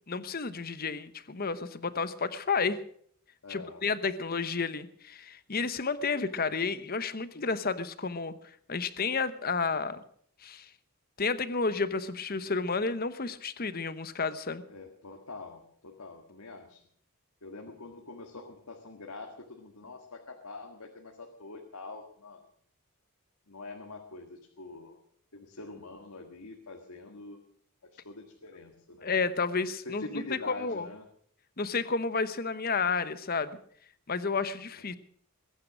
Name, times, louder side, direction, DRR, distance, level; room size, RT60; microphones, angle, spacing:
voice 1, 0.1-2.8 3.5-8.4 8.7-10.0 10.4-10.7 11.2-14.6 29.0-30.9 31.6-33.6 34.1-35.0, left 4 dB, 40° left, 13 dB, 0.9 m, -31 dB
voice 2, 3.4-3.9 14.7-16.8 17.4-22.4 23.5-25.0 25.3-27.4 27.9-29.1 29.8-31.1, left 3 dB, 85° left, 3 dB, 1.8 m, -45 dB
21.5 x 9.6 x 6.2 m, 0.63 s
head